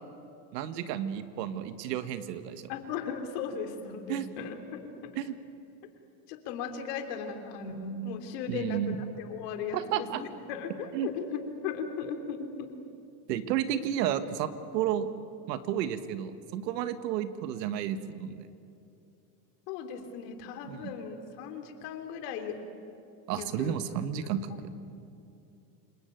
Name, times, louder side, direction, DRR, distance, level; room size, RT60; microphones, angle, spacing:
voice 1, 0.5-2.6 4.1-4.3 5.2-5.4 8.5-9.0 9.7-10.2 10.9-11.1 13.3-15.1 15.5-18.5 20.7-20.9 23.3-24.7, right 10 dB, 85° right, 11 dB, 1.8 m, -32 dB
voice 2, 2.7-5.2 6.3-12.8 19.7-22.6 23.3-23.8 24.1-24.6, left 6 dB, 75° left, 6 dB, 3.4 m, -37 dB
28.5 x 19.5 x 9.3 m, 2.6 s
supercardioid pair, 120°, 48 cm